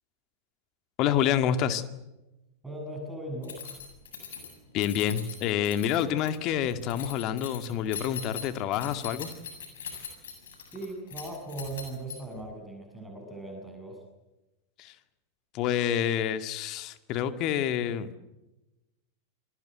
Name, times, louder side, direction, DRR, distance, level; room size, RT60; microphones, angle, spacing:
voice 1, 1.0-1.8 4.7-9.3 14.8-14.9 15.5-18.2, left 9 dB, 40° left, 10 dB, 2.2 m, -28 dB
voice 2, 2.6-3.6 10.7-14.0, right 2 dB, 5° right, 1 dB, 7.5 m, -38 dB
Keys jangling, 3.4-12.4, left 7 dB, 60° left, 7.7 m, -41 dB
28.5 x 21.5 x 8.1 m, 0.99 s
figure-of-eight pair, 90°, 0 cm